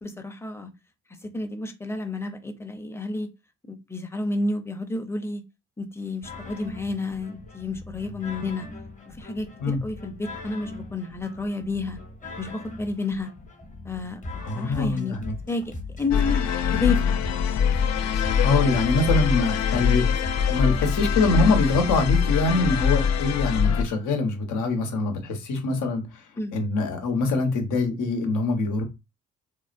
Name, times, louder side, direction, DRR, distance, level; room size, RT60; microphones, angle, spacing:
voice 1, 0.0-0.7 1.2-3.3 3.7-5.4 5.8-8.7 9.1-12.0 12.4-13.3 13.8-15.2 15.5-15.7 16.0-16.5 16.7-17.2 26.4-26.5, left 3 dB, 10° left, 0.5 m, -30 dB
sound 1, 6.2-22.2, left 2 dB, 25° left, 0.9 m, -39 dB
voice 2, 14.4-15.3 18.4-20.1 20.5-26.0 26.5-28.8, left 3 dB, 80° left, 1.0 m, -24 dB
sound 2, 16.1-23.8, left 7 dB, 60° left, 0.5 m, -23 dB
3.6 x 2.0 x 2.5 m
cardioid pair, 90°, 30 cm